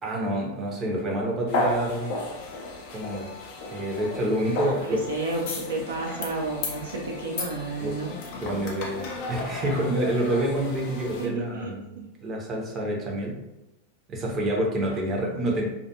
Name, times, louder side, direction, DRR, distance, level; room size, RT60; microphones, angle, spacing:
voice 1, 0.0-2.1 2.9-3.3 3.7-5.0 7.8-7.9 8.4-11.8 12.2-13.4 14.1-15.6, right 1 dB, 25° right, -1 dB, 0.6 m, -27 dB
sound 1, 1.5-11.3, left 2 dB, 45° left, 0.5 m, -34 dB
voice 2, 4.9-8.1 8.8-9.0 11.2-12.1 14.8-15.4, right 3 dB, 65° right, -2 dB, 0.4 m, -32 dB
2.3 x 2.3 x 2.7 m, 0.96 s
figure-of-eight pair, 90°, 0 cm